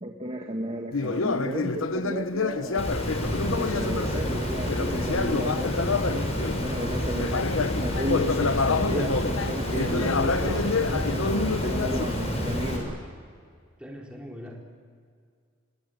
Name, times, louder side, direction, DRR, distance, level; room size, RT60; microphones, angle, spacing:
voice 1, 0.0-2.9 3.3-7.4 7.8-12.9, right 1 dB, 30° right, 2 dB, 1.8 m, -34 dB
Conversation, 0.9-6.7 7.1-12.0, left 4 dB, 75° left, 1.0 m, -28 dB
Water, 2.8-12.8, equal, 30° left, 5.9 m, -29 dB
voice 2, 13.8-14.6, equal, 5° right, -1 dB, 3.9 m, -41 dB
27.5 x 20.5 x 9.2 m, 2.1 s
head